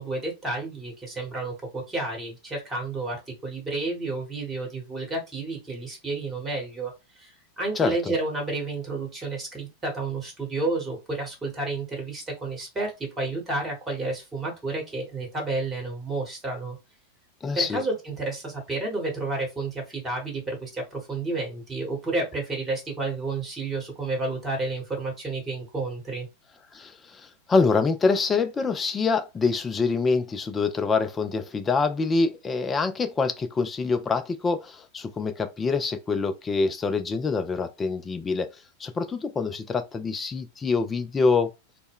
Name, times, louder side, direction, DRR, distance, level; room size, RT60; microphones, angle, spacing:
voice 1, 0.0-16.8 17.5-26.3, right 2 dB, 15° right, 1.1 m, -31 dB
voice 2, 7.8-8.1 17.4-17.8 26.7-38.5 38.8-41.5, left 4 dB, 20° left, 0.4 m, -25 dB
2.1 x 2.1 x 3.5 m
figure-of-eight pair, 90°, 0 cm